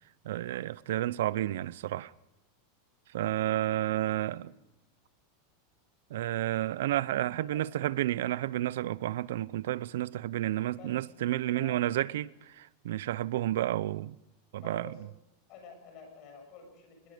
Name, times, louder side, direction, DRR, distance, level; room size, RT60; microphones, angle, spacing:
voice 1, 0.2-2.1 3.1-4.5 6.1-14.2 14.5-14.9, right 14 dB, 75° right, 0.7 m, -31 dB
voice 2, 7.3-7.7 10.7-11.0 11.5-11.8 14.5-15.0 15.5-17.1, left 5 dB, 35° left, 7.2 m, -50 dB
24.0 x 21.5 x 5.2 m
supercardioid pair, 170°, 0 cm